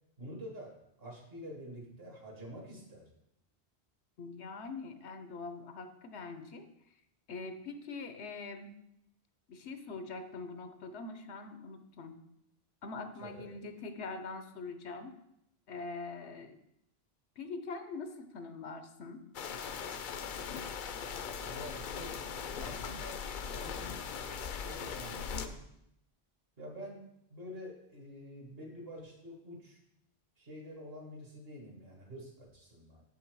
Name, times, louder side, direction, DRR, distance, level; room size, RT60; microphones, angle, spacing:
voice 1, 0.2-0.7 1.0-3.1 13.2-13.5 21.4-22.2 22.6-23.2 23.5-24.0 24.6-25.6 26.6-27.0 27.3-29.8 30.4-33.0, equal, 60° right, 0 dB, 1.9 m, -47 dB
voice 2, 4.2-6.7 7.3-8.7 9.5-12.2 12.8-15.2 15.7-16.6 17.4-19.2 21.4-21.5, left 3 dB, 85° left, 8 dB, 1.1 m, -43 dB
sound 1, 19.3-25.5, left 6 dB, 60° left, 0.6 m, -40 dB
6.7 x 6.0 x 4.7 m, 0.80 s
omnidirectional pair, 1.1 m